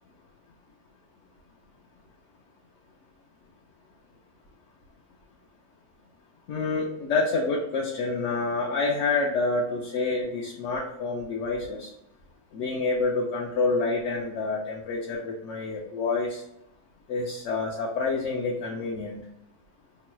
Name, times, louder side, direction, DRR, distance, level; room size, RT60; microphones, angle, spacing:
voice 1, 6.5-11.9 12.5-16.4 17.1-19.2, left 3 dB, 75° left, -2 dB, 0.9 m, -28 dB
3.1 x 2.2 x 4.2 m, 0.81 s
omnidirectional pair, 1.3 m